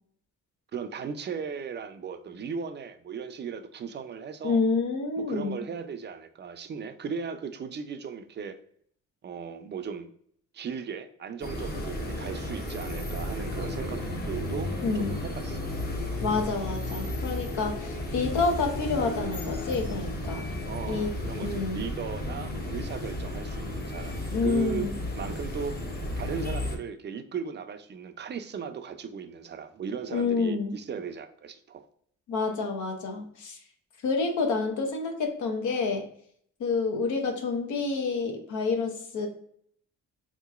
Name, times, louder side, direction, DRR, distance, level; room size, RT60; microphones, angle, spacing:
voice 1, 0.7-4.6 5.2-8.6 9.2-10.1 10.5-15.7 20.6-24.9 25.1-25.8 26.2-31.9, right 6 dB, 35° right, 0.4 m, -37 dB
voice 2, 4.4-5.6 14.8-15.1 16.2-20.4 20.9-21.1 21.4-21.8 24.3-24.9 30.1-30.7 32.3-33.6 34.0-36.0 36.6-39.3, left 4 dB, 75° left, 0.9 m, -28 dB
sound 1, 11.4-26.8, left 1 dB, 30° left, 0.8 m, -33 dB
3.8 x 2.9 x 2.3 m
cardioid pair, 90°, 30 cm